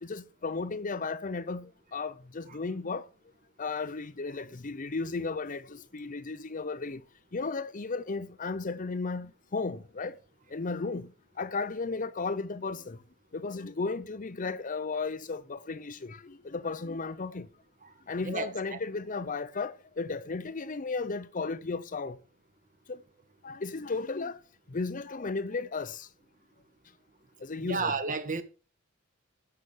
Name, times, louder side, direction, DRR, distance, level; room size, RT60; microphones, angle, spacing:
voice 1, 0.0-3.1 3.6-7.0 7.3-10.2 10.5-11.1 11.4-13.0 13.3-17.5 18.1-22.2 22.9-23.0 23.4-24.4 24.7-26.1 27.4-27.9, left 4 dB, 40° left, 0.6 m, -34 dB
voice 2, 18.2-18.8 27.6-28.4, right 4 dB, 40° right, 1.8 m, -32 dB
15.0 x 7.0 x 6.2 m
head